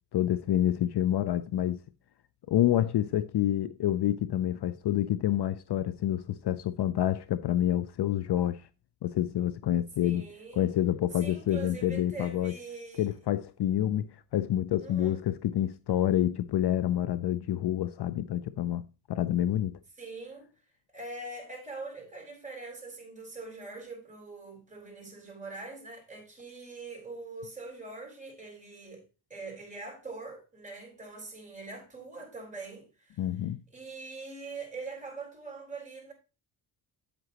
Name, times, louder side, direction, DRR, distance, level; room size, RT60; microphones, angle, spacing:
voice 1, 0.1-1.8 2.5-8.6 9.0-10.2 10.6-12.5 13.0-18.8 19.1-19.7 33.2-33.6, left 12 dB, 60° left, 0.6 m, -28 dB
voice 2, 10.0-10.7 11.2-13.2 14.8-15.2 20.0-20.5 20.9-29.0 29.3-33.2 33.7-36.1, right 3 dB, 15° right, 4.5 m, -43 dB
8.7 x 8.0 x 2.9 m
cardioid pair, 90°, 46 cm